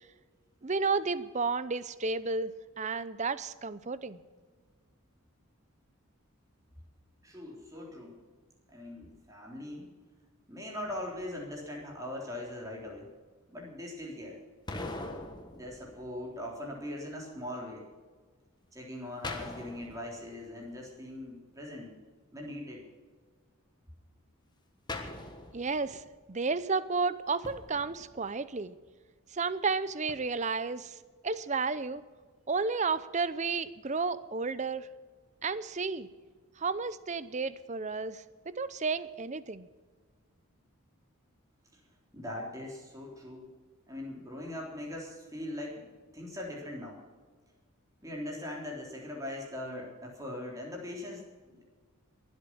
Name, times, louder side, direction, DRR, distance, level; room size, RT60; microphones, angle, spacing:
voice 1, 0.6-4.2 25.5-28.8 29.3-31.0 31.2-32.0 32.5-34.9 35.4-36.1 36.6-39.7, right 4 dB, 35° right, 15 dB, 0.6 m, -32 dB
voice 2, 7.2-8.2 8.7-9.9 10.5-13.1 13.5-14.4 15.5-17.8 18.7-21.9 22.3-22.8 41.7-41.8 42.1-43.5 43.9-45.9 46.1-47.0 48.0-51.6, left 1 dB, 15° right, -2 dB, 3.6 m, -41 dB
sound 1, 10.8-11.7 14.7-16.6 19.2-20.8 24.9-26.2 27.4-28.6 30.1-30.2, left 2 dB, 20° left, 1.4 m, -43 dB
22.5 x 8.3 x 6.2 m, 1.5 s
head